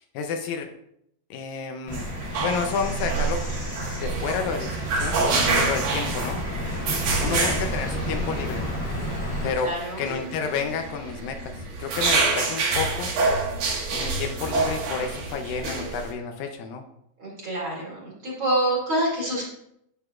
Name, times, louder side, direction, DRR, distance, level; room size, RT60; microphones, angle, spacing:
voice 1, 0.1-0.7 1.3-2.1 2.4-3.4 4.0-5.2 5.5-6.4 7.2-8.8 9.4-9.7 10.0-13.1 13.9-16.8, left 5 dB, 80° left, 5 dB, 2.5 m, -30 dB
Bird vocalization bird call bird song, 1.9-9.5, equal, 35° left, 1.4 m, -31 dB
sound 1, 1.9-16.1, right 3 dB, 80° right, 3.4 m, -27 dB
voice 2, 7.1-7.7 9.6-10.0 17.2-19.4, right 1 dB, 40° right, -5 dB, 2.8 m, -27 dB
9.7 x 8.3 x 2.4 m, 0.75 s
omnidirectional pair, 4.0 m